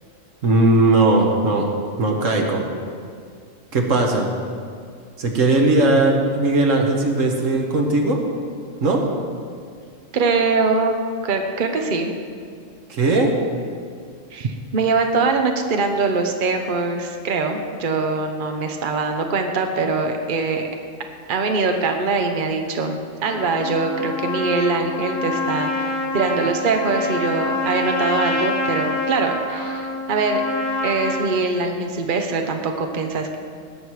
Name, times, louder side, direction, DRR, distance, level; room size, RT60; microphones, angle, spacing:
voice 1, 0.4-1.7 2.0-2.6 3.7-4.3 5.2-8.2 8.8-9.0 12.9-13.3, right 2 dB, 90° right, 1 dB, 1.8 m, -18 dB
voice 2, 10.1-11.0 11.2-12.1 14.3-20.7 21.3-25.8 26.1-30.4 30.8-33.4, right 4 dB, 45° right, 4 dB, 1.0 m, -22 dB
Trumpet, 23.3-31.3, left 2 dB, 55° left, 1.5 m, -26 dB
18.5 x 7.4 x 4.8 m, 2.2 s
omnidirectional pair, 1.3 m